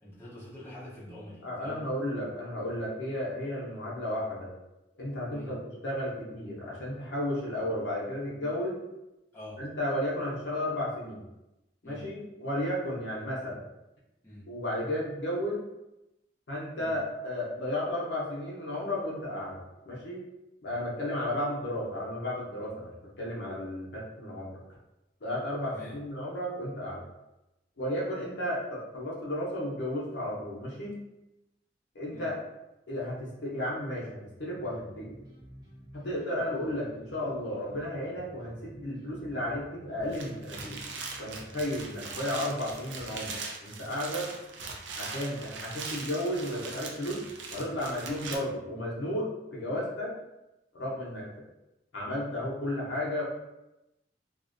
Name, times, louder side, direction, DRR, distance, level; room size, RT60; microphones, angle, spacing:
voice 1, 0.0-1.9 5.3-5.6 9.3-9.7 11.8-12.2 14.2-14.5 16.8-17.0 25.7-26.0 32.1-32.3, left 1 dB, 15° left, -9 dB, 0.7 m, -46 dB
voice 2, 1.4-4.5 5.0-8.8 9.6-11.2 11.8-13.6 14.5-15.6 16.5-19.6 19.8-20.2 20.6-22.9 23.2-24.6 25.2-27.0 27.8-31.0 31.9-32.4 32.9-35.1 35.9-40.8 41.2-44.3 44.9-47.3 47.5-50.1 50.7-51.3 51.9-53.2, left 1 dB, 75° left, -5 dB, 0.7 m, -33 dB
sound 1, 34.5-41.6, equal, 25° right, 0.5 m, -51 dB
sound 2, 40.0-48.4, right 4 dB, 90° right, 0.4 m, -40 dB
2.4 x 2.1 x 2.5 m, 0.94 s
head